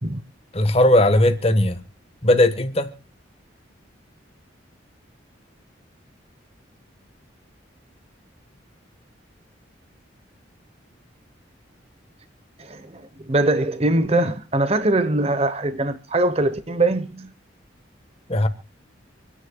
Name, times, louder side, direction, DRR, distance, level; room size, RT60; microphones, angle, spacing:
voice 1, 0.5-1.8 2.2-2.9 18.3-18.5, left 1 dB, 30° left, 1.3 m, -17 dB
voice 2, 12.6-17.3, right 2 dB, 30° right, 1.0 m, -22 dB
27.0 x 10.0 x 2.3 m
head